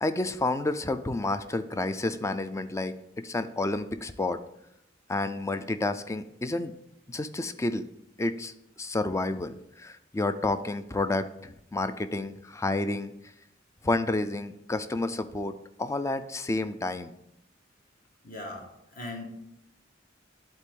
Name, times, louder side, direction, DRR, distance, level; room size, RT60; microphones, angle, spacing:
voice 1, 0.0-4.4 5.1-6.7 7.1-7.8 8.2-13.1 13.8-17.1, left 2 dB, 15° left, 11 dB, 0.4 m, -30 dB
voice 2, 18.2-19.2, left 2 dB, 45° left, 0 dB, 1.5 m, -39 dB
11.0 x 4.2 x 3.7 m, 0.79 s
head